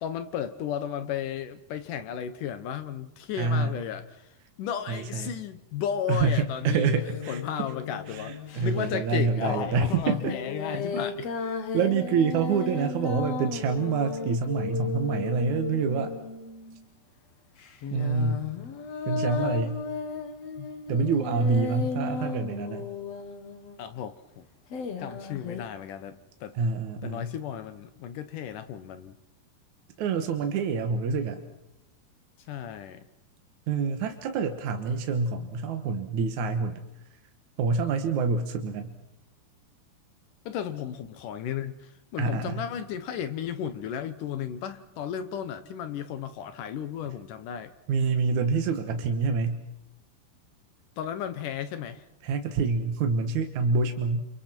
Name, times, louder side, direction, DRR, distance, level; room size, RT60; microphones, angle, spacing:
voice 1, 0.0-4.3 4.6-11.3 20.6-20.7 23.8-24.4 25.0-26.6 27.0-29.1 32.5-33.1 40.5-47.7 51.0-52.0, left 8 dB, 70° left, 11 dB, 2.0 m, -34 dB
voice 2, 3.3-3.7 4.9-5.3 6.1-7.7 8.1-10.3 11.7-16.1 17.9-18.4 19.1-19.8 20.9-22.9 26.5-27.3 30.0-31.4 33.7-36.8 37.6-38.9 42.2-42.6 47.9-49.6 52.2-54.3, right 4 dB, 65° right, 7 dB, 2.1 m, -27 dB
sound 1, 6.8-8.9 10.1-16.8 17.6-24.0 24.7-25.6, left 5 dB, 50° left, 2.1 m, -35 dB
29.5 x 27.5 x 4.5 m, 0.90 s
omnidirectional pair, 4.9 m